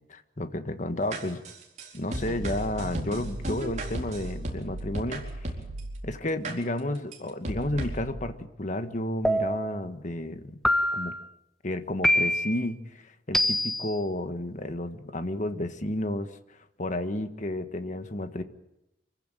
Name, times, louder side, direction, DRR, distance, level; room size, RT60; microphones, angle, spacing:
voice 1, 0.1-1.4 1.9-5.5 6.0-10.6 10.9-11.1 11.6-18.4, left 1 dB, 45° left, 9 dB, 1.6 m, -32 dB
sound 1, 1.1-6.0 6.4-6.5 7.1-7.2 7.4-8.1, right 1 dB, 45° right, 4.5 m, -35 dB
sound 2, 9.2-9.8 10.6-11.2 12.0-12.6 13.3-13.9, equal, ahead, 1.4 m, -25 dB
26.0 x 16.0 x 9.0 m, 0.90 s
head